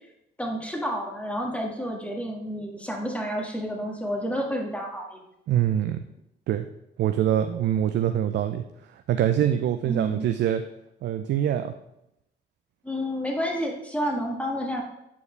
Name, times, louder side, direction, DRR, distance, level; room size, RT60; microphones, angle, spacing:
voice 1, 0.4-5.2 9.8-10.3 12.8-14.8, equal, 5° left, 0 dB, 1.8 m, -30 dB
voice 2, 5.5-6.0 6.5-6.7 7.0-8.6 8.9-10.6 11.0-11.7, right 10 dB, 70° right, 8 dB, 0.4 m, -24 dB
8.3 x 4.6 x 3.3 m, 0.84 s
supercardioid pair, 65°, 19 cm